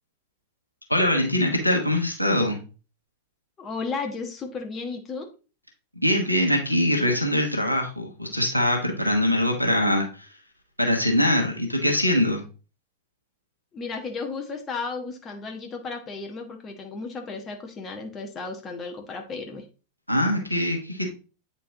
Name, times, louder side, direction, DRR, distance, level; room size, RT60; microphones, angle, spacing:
voice 1, 0.9-2.6 6.0-10.3 10.8-12.4 20.1-21.1, left 1 dB, 90° left, 1 dB, 1.2 m, -23 dB
voice 2, 3.6-5.3 13.7-19.6, left 4 dB, 25° left, 3 dB, 1.1 m, -34 dB
8.4 x 4.4 x 2.8 m, 0.34 s
figure-of-eight pair, 90°, 0 cm